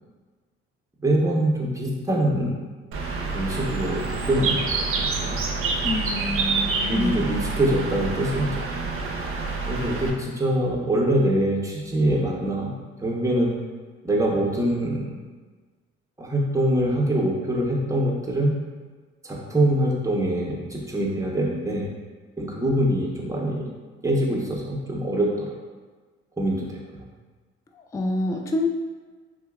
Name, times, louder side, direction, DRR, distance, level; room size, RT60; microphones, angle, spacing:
voice 1, 1.0-2.5 3.3-5.4 6.9-8.7 9.7-12.7 13.0-13.5 14.0-15.1 16.2-18.5 19.2-21.9 22.4-23.7 24.0-25.5 26.4-27.0, right 1 dB, 10° right, -3 dB, 0.9 m, -24 dB
Bird, 2.9-10.1, right 4 dB, 45° right, 0.6 m, -27 dB
voice 2, 5.8-7.1 27.9-28.7, left 2 dB, 10° left, 3 dB, 0.3 m, -27 dB
4.0 x 2.7 x 2.3 m, 1.4 s
hypercardioid pair, 55°, 31 cm